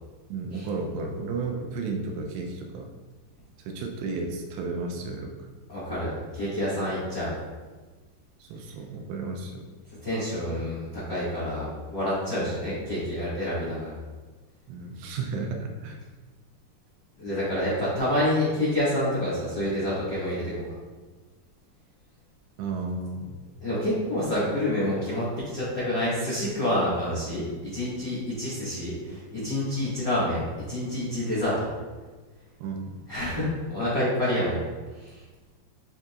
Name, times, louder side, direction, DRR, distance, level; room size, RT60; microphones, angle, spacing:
voice 1, 0.3-2.9 3.7-5.5 8.4-9.6 12.4-12.5 14.7-16.0 22.6-23.4 29.1-29.2 32.6-33.0, right 3 dB, 80° right, 2 dB, 2.7 m, -33 dB
voice 2, 5.7-7.3 10.0-13.9 17.2-20.5 23.6-25.2 25.5-31.7 33.1-34.6 35.0-35.2, left 1 dB, 60° left, -11 dB, 1.1 m, -28 dB
10.0 x 3.9 x 2.4 m, 1.3 s
omnidirectional pair, 5.1 m